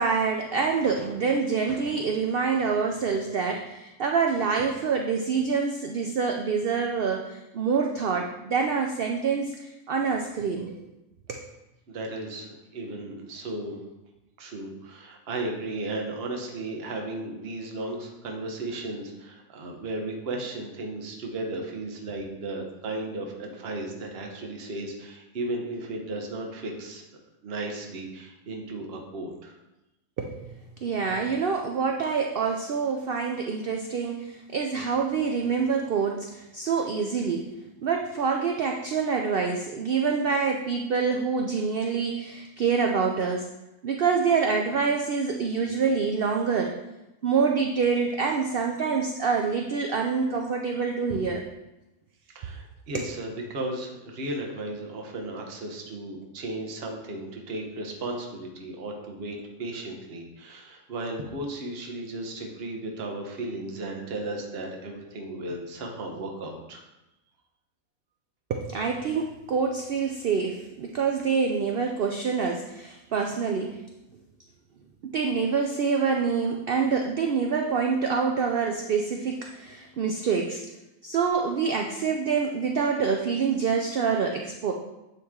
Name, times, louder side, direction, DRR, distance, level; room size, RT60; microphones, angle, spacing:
voice 1, 0.0-10.7 11.3-11.4 30.2-37.5 37.8-43.5 43.8-46.8 47.2-51.4 52.9-53.0 68.5-73.8 75.0-80.6 81.0-84.7, right 5 dB, 75° right, 2 dB, 0.5 m, -26 dB
voice 2, 11.9-13.8 14.4-27.0 27.4-29.5 52.3-66.8, right 2 dB, 45° right, 1 dB, 1.1 m, -35 dB
9.2 x 3.1 x 3.6 m, 0.96 s
omnidirectional pair, 1.5 m